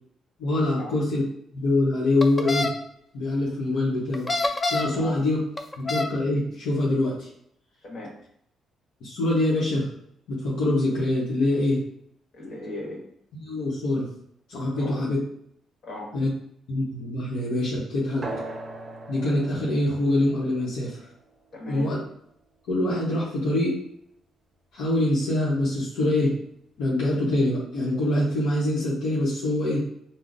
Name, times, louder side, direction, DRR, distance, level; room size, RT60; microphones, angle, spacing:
voice 1, 0.4-1.2 1.5-2.7 3.1-4.3 4.7-5.4 5.8-7.3 9.0-9.9 10.3-11.8 13.4-14.1 14.5-15.2 16.1-16.3 16.7-18.3 19.1-21.0 21.7-22.0 22.7-23.8 24.7-26.4 26.8-29.8, left 1 dB, 85° left, -7 dB, 0.8 m, -24 dB
sound 1, 2.2-2.7 4.1-5.0 5.6-6.1, left 2 dB, 25° left, 0.4 m, -26 dB
voice 2, 7.8-8.2 12.3-13.0 14.7-15.0 15.8-16.1 21.5-21.9, left 1 dB, 60° left, -3 dB, 1.2 m, -37 dB
sound 2, 18.2-23.3, right 2 dB, 30° right, 0.6 m, -41 dB
3.7 x 2.0 x 2.4 m, 0.71 s
cardioid pair, 90°, 0 cm